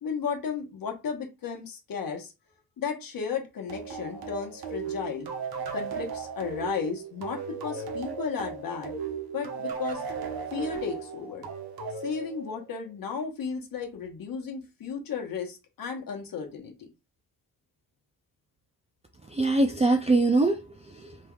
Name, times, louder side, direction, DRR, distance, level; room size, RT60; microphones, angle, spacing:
voice 1, 0.0-2.3 2.8-5.3 5.7-8.9 9.3-10.0 10.5-11.5 12.0-16.9, left 6 dB, 65° left, 1.1 m, -34 dB
sound 1, 3.7-12.9, right 5 dB, 75° right, 0.9 m, -36 dB
voice 2, 19.3-21.3, right 2 dB, 20° right, 0.3 m, -24 dB
3.4 x 2.9 x 2.3 m
cardioid pair, 115°, 37 cm